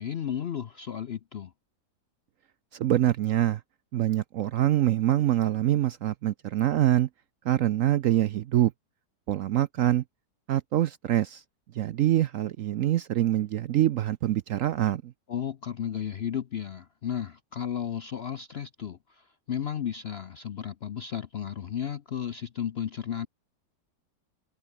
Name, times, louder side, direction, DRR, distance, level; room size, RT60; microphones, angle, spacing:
voice 1, 0.0-1.5 15.3-23.3, left 9 dB, 60° left, 0.6 m, -34 dB
voice 2, 2.7-3.6 3.9-7.1 7.4-8.7 9.3-10.0 10.5-11.4 11.7-15.1, right 12 dB, 70° right, 0.8 m, -25 dB
omnidirectional pair, 1.8 m